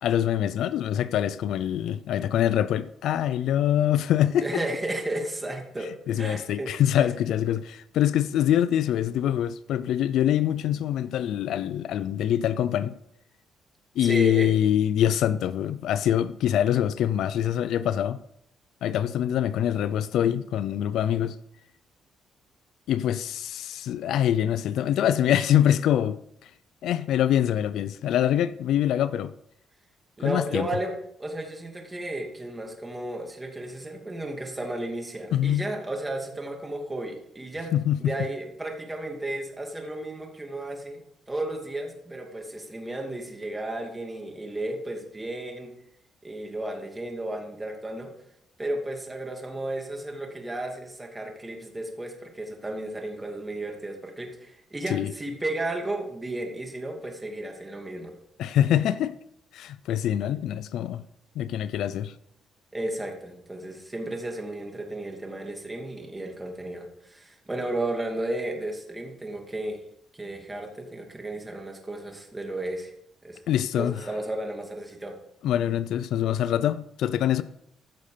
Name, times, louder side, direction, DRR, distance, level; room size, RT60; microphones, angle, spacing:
voice 1, 0.0-4.6 6.1-12.9 14.0-18.2 18.8-21.4 22.9-26.5 26.8-29.3 30.2-30.7 35.3-35.7 37.7-38.1 54.9-55.1 58.4-59.1 59.5-61.0 61.4-62.1 73.5-74.0 75.4-77.4, left 11 dB, 80° left, 0.5 m, -24 dB
voice 2, 4.4-5.9 6.2-6.7 7.0-7.1 14.0-14.5 30.2-30.9 31.2-37.7 38.0-45.7 46.2-48.1 48.6-58.1 62.7-69.8 70.1-72.9 73.2-73.4 73.7-75.1, right 1 dB, 15° right, 2.6 m, -33 dB
15.0 x 6.6 x 5.1 m
cardioid pair, 90°, 0 cm